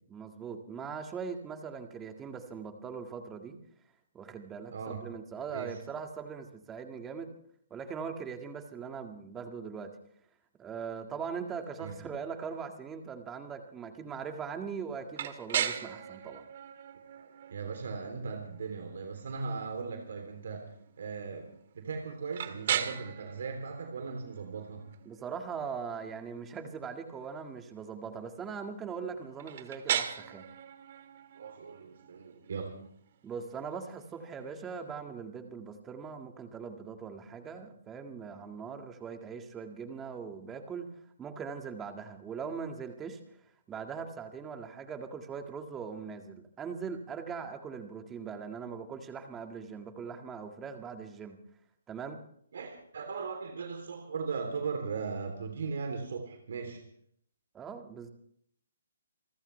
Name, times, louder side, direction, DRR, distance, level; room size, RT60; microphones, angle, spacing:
voice 1, 0.1-3.6 4.1-7.4 7.7-9.9 10.6-16.4 25.1-30.5 33.2-40.9 41.2-43.2 43.7-51.4 51.9-52.2 57.5-58.1, right 6 dB, 15° right, 5 dB, 1.9 m, -40 dB
voice 2, 4.7-5.0 5.5-5.8 11.8-11.9 17.5-20.7 21.0-24.9 31.3-32.8 52.5-56.8, right 5 dB, 65° right, 4 dB, 3.2 m, -38 dB
sound 1, 15.1-34.9, right 9 dB, 50° right, 1.9 m, -39 dB
28.0 x 14.0 x 3.3 m, 0.67 s
hypercardioid pair, 150°, 0 cm